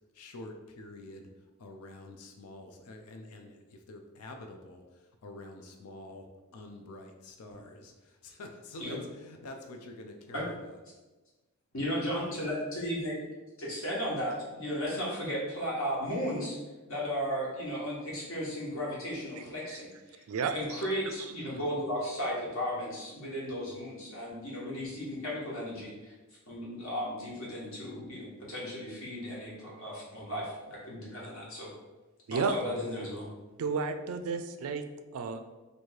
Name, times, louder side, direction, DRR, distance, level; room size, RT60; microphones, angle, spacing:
voice 1, 0.1-1.3 1.6-6.3 6.5-10.8, left 2 dB, 85° left, 4 dB, 0.5 m, -47 dB
voice 2, 11.7-13.2 13.6-16.6 16.9-20.2 20.5-26.1 26.5-31.7 32.3-33.3, equal, 60° left, -5 dB, 1.4 m, -35 dB
voice 3, 32.3-32.6 33.6-34.8 35.1-35.4, right 5 dB, 70° right, 8 dB, 0.4 m, -31 dB
3.0 x 2.7 x 4.5 m, 1.2 s
head